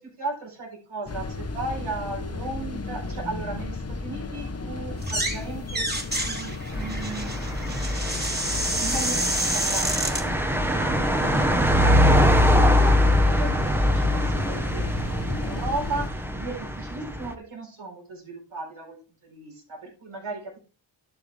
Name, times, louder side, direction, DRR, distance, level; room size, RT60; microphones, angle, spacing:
voice 1, 0.0-5.9 6.2-10.2 10.5-11.5 11.8-14.9 15.2-19.0 19.2-20.6, right 3 dB, 85° right, 0 dB, 4.4 m, -36 dB
sound 1, 1.1-16.1, left 3 dB, 30° left, 1.2 m, -35 dB
sound 2, 5.0-5.4 5.7-10.2, right 1 dB, 20° right, 2.6 m, -28 dB
sound 3, 6.7-17.3, left 1 dB, 5° right, 1.2 m, -23 dB
11.5 x 7.0 x 3.5 m, 0.36 s
wide cardioid pair, 80°, 48 cm